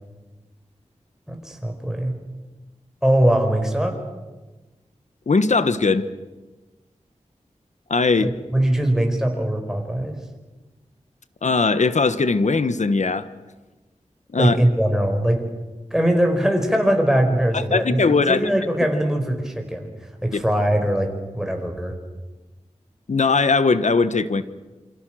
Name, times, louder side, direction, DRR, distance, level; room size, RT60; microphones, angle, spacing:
voice 1, 1.3-2.2 3.0-4.0 8.2-10.2 14.4-15.5 15.9-19.9 20.2-21.9, right 1 dB, 5° right, 4 dB, 4.9 m, -21 dB
voice 2, 5.3-6.1 7.9-8.3 11.4-13.3 14.3-14.6 17.7-18.5 20.3-20.4 23.1-24.4, left 4 dB, 70° left, 13 dB, 1.2 m, -19 dB
27.5 x 25.5 x 6.3 m, 1.2 s
wide cardioid pair, 70°, 12 cm